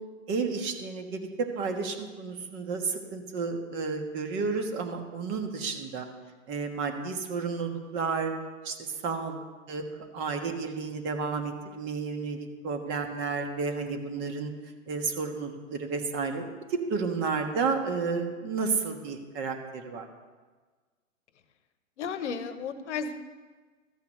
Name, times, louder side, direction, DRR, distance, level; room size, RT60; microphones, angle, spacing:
voice 1, 0.3-6.1 6.5-8.3 8.6-8.8 9.0-9.4 9.7-9.8 10.1-14.5 14.9-16.4 16.7-20.1, right 4 dB, 30° right, 5 dB, 1.5 m, -31 dB
voice 2, 22.0-23.1, left 6 dB, 60° left, 11 dB, 1.1 m, -33 dB
13.5 x 5.7 x 7.9 m, 1.4 s
hypercardioid pair, 125°, 39 cm